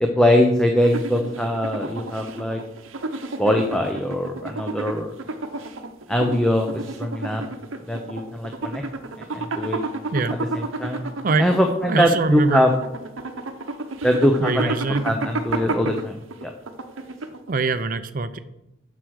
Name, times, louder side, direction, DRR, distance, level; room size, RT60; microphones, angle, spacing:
voice 1, 0.0-2.6 3.4-5.1 6.1-7.4 7.8-8.8 9.2-9.8 10.5-11.0 11.4-12.7 14.0-14.7 15.0-16.5, equal, 5° left, 3 dB, 0.6 m, -22 dB
sound 1, 0.8-17.6, right 2 dB, 90° right, 0.8 m, -31 dB
voice 2, 11.9-12.7 14.4-15.0 15.8-15.9 17.5-18.4, right 3 dB, 45° right, 11 dB, 0.5 m, -23 dB
7.9 x 6.1 x 6.3 m, 0.89 s
head